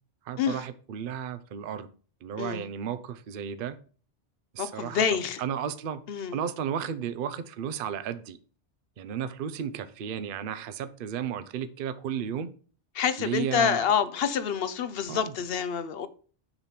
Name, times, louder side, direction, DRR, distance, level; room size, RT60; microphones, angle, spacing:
voice 1, 0.3-1.9 2.2-3.8 4.5-5.0 5.4-6.0 6.3-8.4 9.0-12.5 13.2-13.9 15.1-15.3, right 8 dB, 60° right, 0.7 m, -33 dB
voice 2, 4.6-5.4 6.1-6.4 12.9-16.1, left 7 dB, 65° left, 0.8 m, -27 dB
6.7 x 3.0 x 5.7 m
omnidirectional pair, 1.2 m